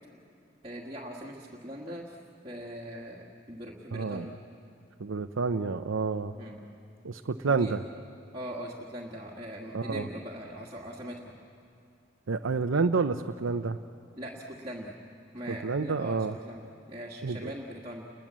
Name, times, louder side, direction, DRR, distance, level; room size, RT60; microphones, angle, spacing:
voice 1, 0.6-2.2 2.4-4.3 6.3-6.6 7.5-7.7 8.3-11.3 14.2-14.9 15.3-16.6 16.9-18.1, equal, 25° right, -4 dB, 1.7 m, -41 dB
voice 2, 3.9-4.3 5.0-6.3 7.0-7.8 9.7-10.1 12.3-13.8 15.5-16.3 17.2-17.5, right 4 dB, 85° right, 6 dB, 0.7 m, -29 dB
29.0 x 21.5 x 7.5 m, 2.6 s
head